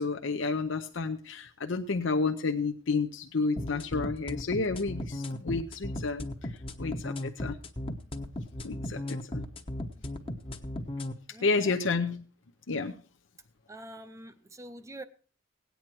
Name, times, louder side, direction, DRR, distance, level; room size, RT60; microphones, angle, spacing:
voice 1, 0.0-6.3 6.8-7.6 8.6-9.2 11.4-12.2 12.7-12.9, left 4 dB, 70° left, 5 dB, 0.7 m, -30 dB
sound 1, 3.6-11.1, left 1 dB, 30° left, 1.0 m, -35 dB
voice 2, 11.3-11.8 13.7-15.0, right 1 dB, 15° right, 10 dB, 0.6 m, -45 dB
17.5 x 9.3 x 4.5 m, 0.43 s
head